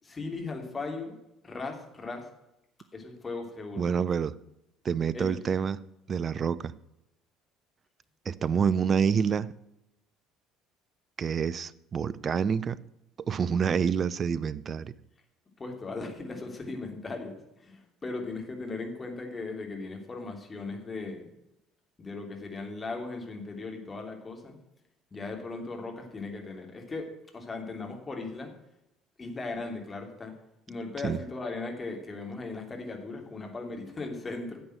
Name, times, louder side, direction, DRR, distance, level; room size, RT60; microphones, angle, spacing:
voice 1, 0.0-1.2 1.4-2.2 2.9-3.9 5.1-5.4 15.6-21.3 22.0-24.6 25.1-27.0 27.3-28.5 29.2-30.3 30.7-34.6, left 3 dB, 25° left, 3.0 m, -38 dB
voice 2, 3.8-4.3 4.8-5.8 6.1-6.7 8.3-9.5 11.2-12.8 13.3-14.9 31.0-31.2, right 6 dB, 35° right, 0.6 m, -27 dB
11.0 x 7.8 x 7.7 m
figure-of-eight pair, 55°, 0 cm